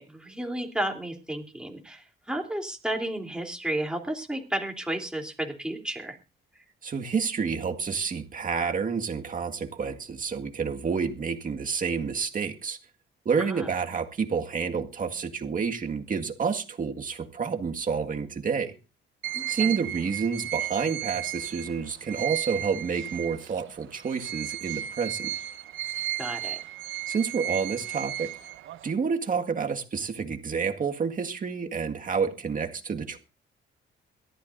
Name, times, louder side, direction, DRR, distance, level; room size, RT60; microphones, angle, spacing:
voice 1, 0.0-6.2 13.4-13.7 19.3-19.8 26.2-26.6, right 1 dB, 5° right, 2 dB, 3.4 m, -32 dB
voice 2, 6.8-12.8 13.3-18.7 19.5-25.3 27.1-28.3 28.8-33.2, right 5 dB, 40° right, 5 dB, 1.9 m, -29 dB
sound 1, 19.2-23.6 24.0-28.9, right 12 dB, 80° right, 1.0 m, -34 dB
23.0 x 13.5 x 2.6 m, 0.30 s
cardioid pair, 90°, 20 cm